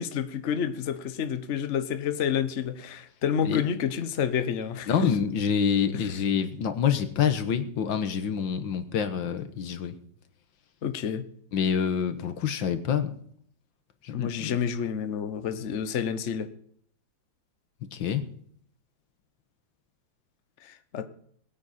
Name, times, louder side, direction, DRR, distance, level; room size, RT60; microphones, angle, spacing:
voice 1, 0.0-5.1 5.9-6.1 10.8-11.3 14.1-16.5 20.6-21.1, left 8 dB, 45° left, 10 dB, 1.1 m, -29 dB
voice 2, 4.9-10.0 11.5-13.2 14.0-14.6 17.9-18.2, left 7 dB, 85° left, 9 dB, 1.9 m, -27 dB
22.0 x 8.9 x 4.2 m, 0.63 s
omnidirectional pair, 2.0 m